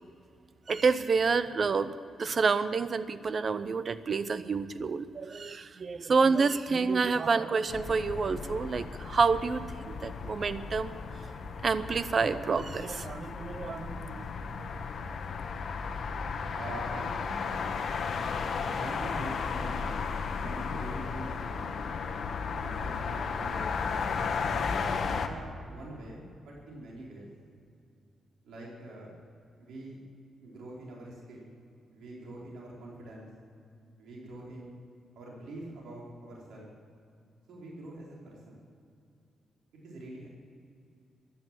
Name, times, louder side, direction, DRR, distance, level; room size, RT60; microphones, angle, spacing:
voice 1, 0.7-11.0 11.6-14.2, right 4 dB, 40° right, 14 dB, 0.7 m, -28 dB
sound 1, 7.7-25.3, left 5 dB, 55° left, 1.3 m, -34 dB
voice 2, 16.5-17.8 18.7-20.1 20.4-21.7 22.6-23.7 24.4-27.3 28.4-29.1 29.6-30.0 30.4-31.5 31.9-33.3 34.0-34.8 35.1-36.7 37.5-38.6 39.8-40.3, right 1 dB, 90° right, -4 dB, 4.3 m, -44 dB
15.0 x 11.5 x 7.5 m, 2.4 s
cardioid pair, 120°, 0 cm